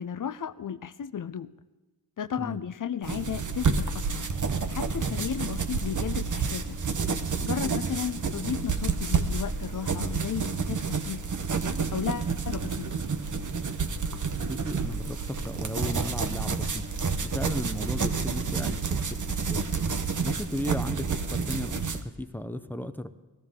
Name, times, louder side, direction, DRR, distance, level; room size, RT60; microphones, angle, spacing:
voice 1, 0.0-1.5 2.2-4.3 4.7-6.8 7.4-11.2 11.9-13.0, left 8 dB, 45° left, 14 dB, 0.6 m, -34 dB
sound 1, 3.0-22.0, right 5 dB, 45° right, 0.9 m, -29 dB
voice 2, 14.5-16.8 17.2-19.6 20.2-23.1, left 1 dB, 5° left, 10 dB, 0.6 m, -35 dB
18.0 x 12.5 x 3.7 m, 1.2 s
cardioid pair, 50°, 44 cm